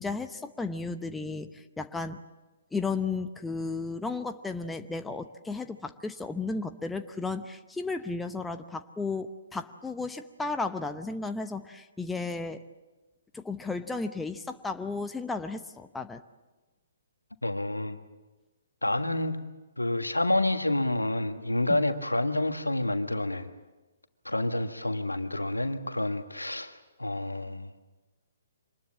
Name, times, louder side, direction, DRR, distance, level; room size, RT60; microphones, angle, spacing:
voice 1, 0.0-2.2 2.7-12.6 13.3-16.2 21.7-21.8, left 3 dB, 5° left, 7 dB, 0.8 m, -34 dB
voice 2, 17.4-18.0 18.8-19.4 19.8-23.5 24.3-26.7 27.0-27.7, left 1 dB, 90° left, 7 dB, 1.6 m, -28 dB
25.5 x 20.5 x 7.5 m, 1.2 s
figure-of-eight pair, 130°, 0 cm